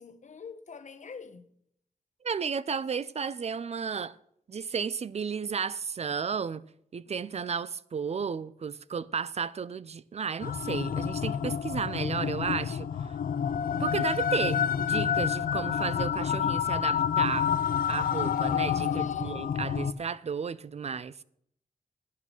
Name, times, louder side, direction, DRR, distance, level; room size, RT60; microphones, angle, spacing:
voice 1, 0.0-1.5 18.8-19.6, left 5 dB, 55° left, 1.0 m, -46 dB
voice 2, 2.2-4.1 4.5-6.6 6.9-12.9 13.8-17.5 17.9-21.1, right 6 dB, 45° right, 0.4 m, -33 dB
sound 1, 10.4-19.9, left 8 dB, 75° left, 0.5 m, -28 dB
10.5 x 8.3 x 6.1 m
wide cardioid pair, 100°, 15 cm